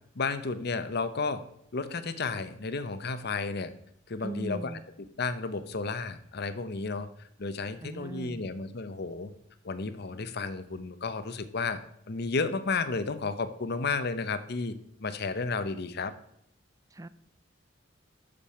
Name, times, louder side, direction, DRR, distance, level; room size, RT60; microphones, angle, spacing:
voice 1, 0.1-1.4 1.7-3.7 4.1-4.7 5.2-7.1 7.4-9.3 9.6-11.8 12.1-14.7 15.0-16.1, left 4 dB, 55° left, 12 dB, 0.8 m, -32 dB
voice 2, 4.2-4.9 7.8-8.5 16.9-17.1, right 1 dB, 20° right, 15 dB, 0.4 m, -39 dB
8.6 x 6.9 x 5.6 m, 0.71 s
head